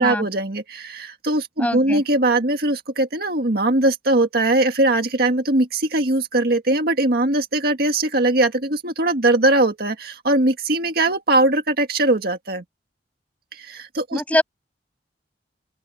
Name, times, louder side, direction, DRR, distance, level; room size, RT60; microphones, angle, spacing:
voice 1, 0.0-12.6 13.5-14.2, right 2 dB, 60° right, 1.9 m, -20 dB
voice 2, 1.6-2.0 14.1-14.4, left 1 dB, 10° left, 6.4 m, -22 dB
open air
head